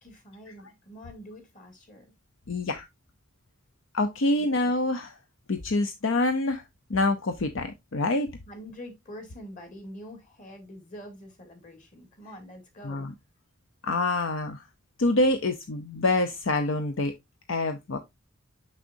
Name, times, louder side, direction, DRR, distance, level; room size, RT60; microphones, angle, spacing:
voice 1, 0.0-2.1 4.4-4.5 8.5-13.1, equal, 40° left, 2.4 m, -45 dB
voice 2, 2.5-2.8 3.9-5.2 5.5-6.6 6.9-8.3 12.8-13.1 13.8-14.6 15.0-17.1 17.5-18.0, left 2 dB, 65° left, 0.7 m, -26 dB
6.5 x 6.2 x 2.6 m
head